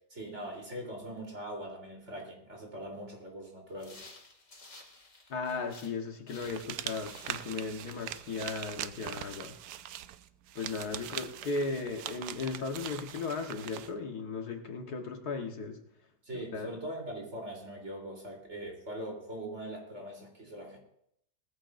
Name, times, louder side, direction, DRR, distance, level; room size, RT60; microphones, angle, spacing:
voice 1, 0.1-4.0 16.2-20.8, right 1 dB, 40° right, 0 dB, 3.9 m, -41 dB
sound 1, 3.7-6.0 6.3-8.9, left 2 dB, 45° left, 2.7 m, -54 dB
voice 2, 5.3-9.5 10.6-15.8 16.5-16.7, left 4 dB, 65° left, 3 dB, 1.8 m, -36 dB
sound 2, 6.4-13.9, right 11 dB, 75° right, 1.2 m, -42 dB
19.5 x 14.5 x 2.6 m, 0.74 s
omnidirectional pair, 1.8 m